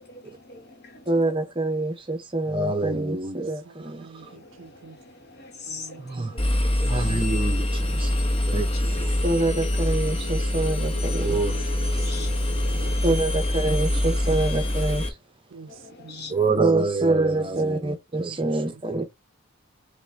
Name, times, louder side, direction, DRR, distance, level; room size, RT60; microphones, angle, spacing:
voice 1, 1.1-4.1 6.0-6.3 6.8-8.1 8.5-12.1 13.0-15.0 16.3-19.0, right 2 dB, 25° right, 0.7 m, -26 dB
voice 2, 3.7-5.0 5.7-6.0 10.9-12.3 12.7-13.0 15.5-15.7 16.0-16.4 18.3-18.6, right 4 dB, 55° right, 0.4 m, -46 dB
voice 3, 5.4-6.5 6.8-7.0 8.0-8.5 12.1-13.0 15.8-16.3, left 3 dB, 45° left, 1.0 m, -41 dB
Engine, 6.4-15.1, left 1 dB, 25° left, 0.9 m, -24 dB
5.8 x 2.2 x 3.5 m
head